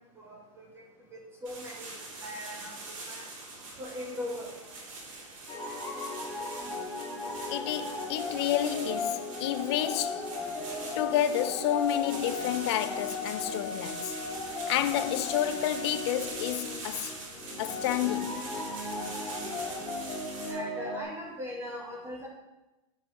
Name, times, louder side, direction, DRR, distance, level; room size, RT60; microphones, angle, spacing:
voice 1, 0.2-0.7 1.1-3.2 3.8-4.5 20.5-22.3, left 1 dB, 15° right, 1.8 m, -40 dB
sound 1, 1.4-20.5, right 3 dB, 70° right, 3.4 m, -43 dB
sound 2, 5.5-21.0, left 3 dB, 20° left, 2.8 m, -36 dB
voice 2, 7.5-10.3 10.9-14.1 14.5-17.1 17.6-18.6, left 11 dB, 55° left, 0.6 m, -30 dB
9.0 x 5.8 x 6.3 m
supercardioid pair, 160°, 17 cm